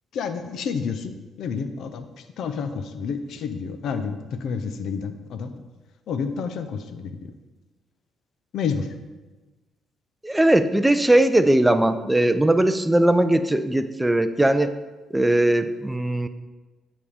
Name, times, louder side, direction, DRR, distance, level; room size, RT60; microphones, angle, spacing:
voice 1, 0.1-2.1 2.4-5.5 6.1-7.3 8.5-8.9, left 6 dB, 75° left, 9 dB, 0.6 m, -29 dB
voice 2, 10.2-14.7 15.1-16.3, right 1 dB, 10° right, 10 dB, 0.4 m, -19 dB
9.5 x 3.6 x 5.0 m, 1.2 s
cardioid pair, 90°, 0 cm